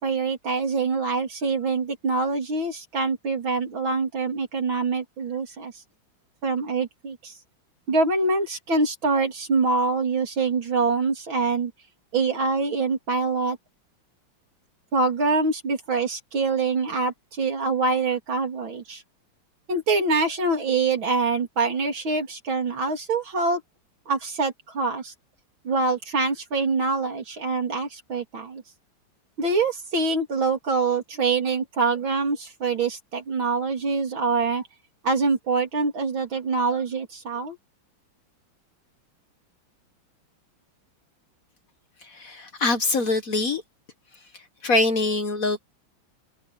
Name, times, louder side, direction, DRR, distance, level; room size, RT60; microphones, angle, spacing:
voice 1, 0.0-5.7 6.4-7.3 7.9-11.7 12.1-13.6 14.9-19.0 19.7-23.6 24.1-25.1 25.6-28.6 29.4-34.6 35.0-37.6, right 3 dB, 70° right, 4.2 m, -25 dB
voice 2, 42.0-43.6 44.3-45.6, left 2 dB, 45° left, 1.6 m, -24 dB
omnidirectional pair, 2.2 m